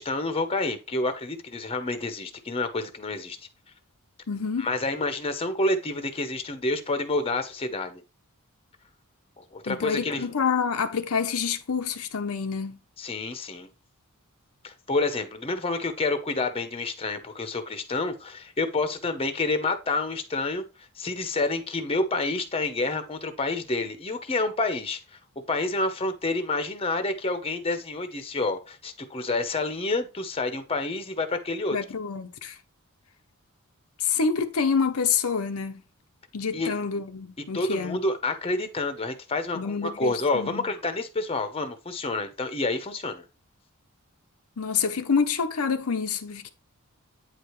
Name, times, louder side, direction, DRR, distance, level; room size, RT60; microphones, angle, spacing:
voice 1, 0.0-3.4 4.6-8.0 9.5-10.3 13.0-13.7 14.6-20.6 21.0-25.0 25.5-31.8 36.5-36.7 37.5-43.2, left 2 dB, 25° left, 0.8 m, -28 dB
voice 2, 4.3-4.7 9.7-12.8 31.7-32.6 34.0-35.8 36.3-38.0 39.5-40.7 44.6-46.5, left 5 dB, 75° left, 0.7 m, -27 dB
8.9 x 4.8 x 3.1 m
head